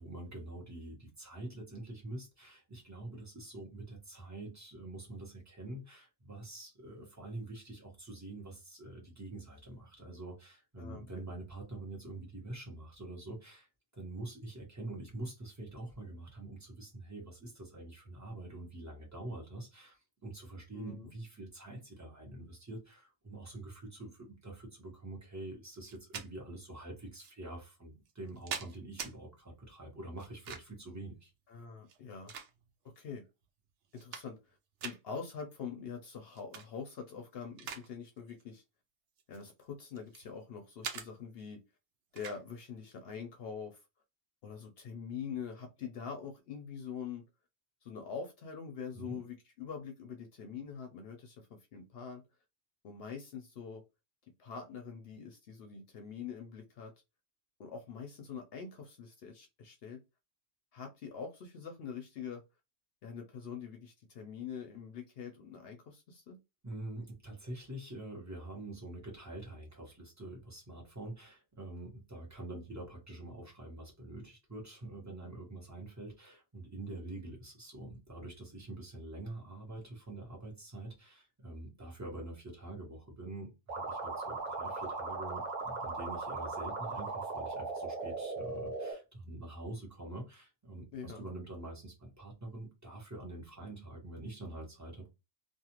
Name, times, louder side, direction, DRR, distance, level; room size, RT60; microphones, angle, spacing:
voice 1, 0.0-31.3 48.9-49.2 66.6-95.1, right 2 dB, 15° right, 1.0 m, -46 dB
voice 2, 20.7-21.1 31.5-32.3 33.0-33.2 33.9-34.6 34.8-38.6 39.3-41.6 42.1-43.8 44.4-47.2 47.8-52.2 52.8-53.8 54.4-56.9 57.6-60.0 60.7-62.4 63.0-66.4 90.9-91.3, left 6 dB, 65° left, 0.8 m, -44 dB
sound 1, 25.8-26.3 27.2-27.3 28.1-29.1 30.2-30.8 31.8-32.9 33.4-33.5 33.8-34.5 34.8-35.0 36.3-36.7 37.1-37.9 38.2-38.4 39.2-40.3 40.8-41.1 42.2-42.4, right 7 dB, 85° right, 0.9 m, -43 dB
sound 2, 83.7-88.9, right 3 dB, 45° right, 0.8 m, -38 dB
2.4 x 2.4 x 2.9 m
omnidirectional pair, 1.1 m